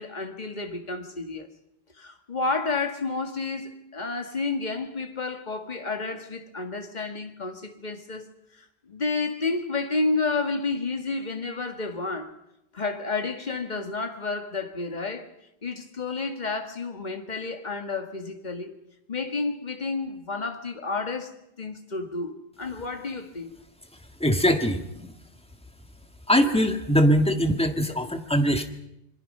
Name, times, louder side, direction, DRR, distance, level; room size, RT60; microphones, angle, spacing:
voice 1, 0.0-1.5 2.0-8.3 8.6-12.4 12.7-15.3 15.6-18.7 19.1-23.5, left 3 dB, 45° left, 1.9 m, -30 dB
voice 2, 24.2-25.1 26.3-28.7, equal, 5° left, 1.7 m, -22 dB
26.5 x 22.5 x 5.5 m
omnidirectional pair, 1.1 m